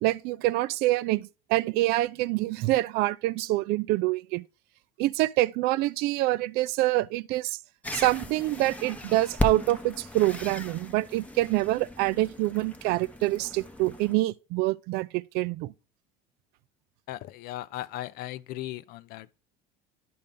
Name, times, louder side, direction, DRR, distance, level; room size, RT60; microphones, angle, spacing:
voice 1, 0.0-4.4 5.0-7.6 7.9-15.7, right 17 dB, 65° right, 0.4 m, -26 dB
sound 1, 7.8-14.1, left 2 dB, 10° left, 0.8 m, -36 dB
voice 2, 17.1-19.4, left 15 dB, 60° left, 0.4 m, -37 dB
10.0 x 5.3 x 3.8 m
supercardioid pair, 110°, 17 cm